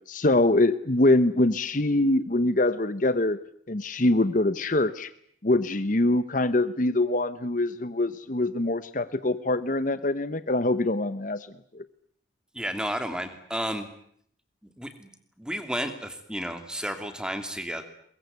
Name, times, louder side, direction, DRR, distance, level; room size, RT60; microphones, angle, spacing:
voice 1, 0.1-3.4 3.7-5.1 5.4-11.5 11.7-11.8, left 2 dB, 45° left, 13 dB, 1.0 m, -24 dB
voice 2, 12.5-13.9 14.6-15.1 15.4-17.8, equal, 5° right, 8 dB, 2.8 m, -32 dB
23.0 x 22.5 x 9.5 m, 0.67 s
head